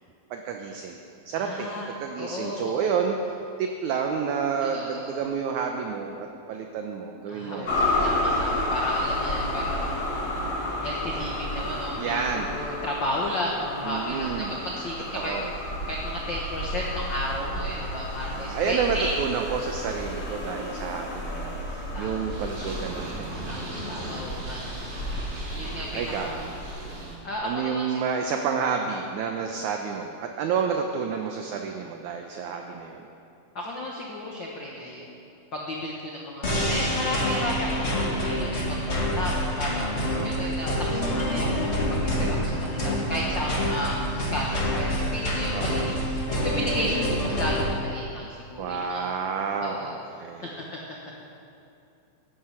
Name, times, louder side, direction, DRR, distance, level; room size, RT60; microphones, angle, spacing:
voice 1, 0.3-1.0 1.3-8.4 12.0-12.7 13.8-14.6 15.2-15.5 17.5-23.4 25.9-26.3 27.4-33.0 40.1-40.6 43.2-43.7 45.5-46.0 48.6-50.6, right 6 dB, 75° right, 3 dB, 1.8 m, -30 dB
voice 2, 1.3-1.9 2.2-2.9 4.6-5.3 7.3-9.9 10.8-14.4 14.6-15.3 15.9-19.1 21.9-22.6 23.5-25.1 25.5-26.4 27.2-28.0 33.5-35.2 35.5-39.9 40.2-49.1 49.6-49.9 50.4-50.6, left 1 dB, 75° left, -2 dB, 1.0 m, -33 dB
sound 1, 7.6-26.8, left 1 dB, 35° left, 2.2 m, -31 dB
Purr, 22.3-27.1, right 2 dB, 50° right, 3.8 m, -38 dB
sound 2, 36.4-47.7, equal, 50° left, 0.7 m, -27 dB
16.0 x 11.5 x 5.8 m, 2.6 s
omnidirectional pair, 4.3 m